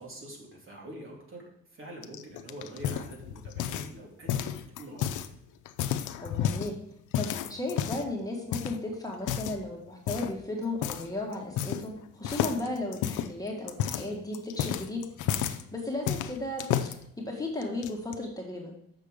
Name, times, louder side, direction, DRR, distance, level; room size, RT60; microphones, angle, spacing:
voice 1, 0.0-1.4 1.7-4.5 4.8-5.2, right 1 dB, 45° right, -2 dB, 3.1 m, -45 dB
sound 1, 2.0-4.0 4.3-5.3 5.7-6.7 7.1-8.1 8.5-8.8 9.2-9.6 10.1-10.4 10.8-11.1 11.3-12.0 12.2-15.6 16.1-16.9 17.6-18.2, left 10 dB, 85° left, 0.6 m, -31 dB
voice 2, 6.2-6.8 7.2-16.6 17.2-18.7, left 2 dB, 10° left, -2 dB, 1.8 m, -35 dB
6.9 x 6.6 x 5.0 m, 0.72 s
cardioid pair, 90°, 30 cm